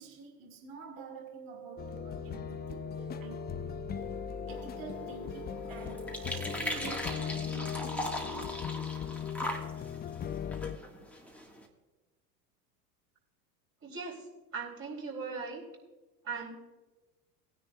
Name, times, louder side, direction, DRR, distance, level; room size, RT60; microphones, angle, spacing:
voice 1, 0.0-3.5 4.5-8.2, right 5 dB, 45° right, 2 dB, 2.5 m, -49 dB
sound 1, 1.0-8.5, right 11 dB, 65° right, 1.0 m, -48 dB
sound 2, 1.8-10.8, left 9 dB, 20° left, 0.5 m, -38 dB
sound 3, 4.5-11.7, equal, 5° left, 1.9 m, -40 dB
voice 2, 13.8-14.2 14.5-15.6 16.2-16.5, right 4 dB, 25° right, -2 dB, 4.1 m, -38 dB
19.5 x 10.0 x 2.5 m, 1.2 s
hypercardioid pair, 85°, 48 cm